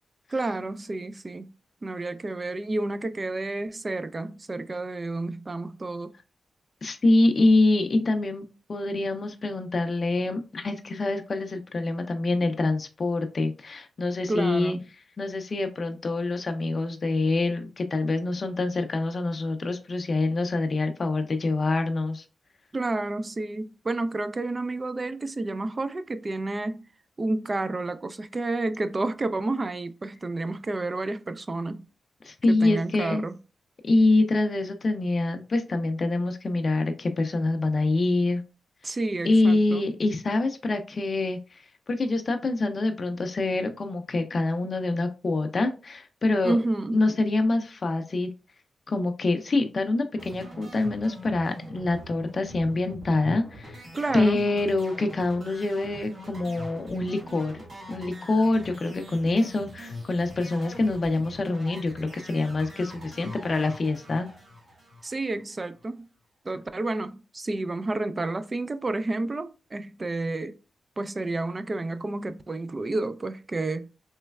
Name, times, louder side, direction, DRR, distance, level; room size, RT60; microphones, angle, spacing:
voice 1, 0.3-1.5 1.8-6.1 14.3-14.8 22.7-26.8 27.2-31.8 32.5-33.3 38.8-39.9 46.4-47.0 53.9-54.4 65.0-66.0 66.4-70.6 71.0-73.9, right 2 dB, 35° right, 0.3 m, -30 dB
voice 2, 6.8-14.8 15.2-22.2 32.2-33.2 33.8-38.4 39.2-46.6 46.9-48.3 48.9-53.8 54.1-57.6 57.9-64.3, left 2 dB, 50° left, 0.4 m, -25 dB
sound 1, 50.2-65.5, equal, 60° right, 1.8 m, -43 dB
3.1 x 3.1 x 2.3 m
cardioid pair, 70°, 0 cm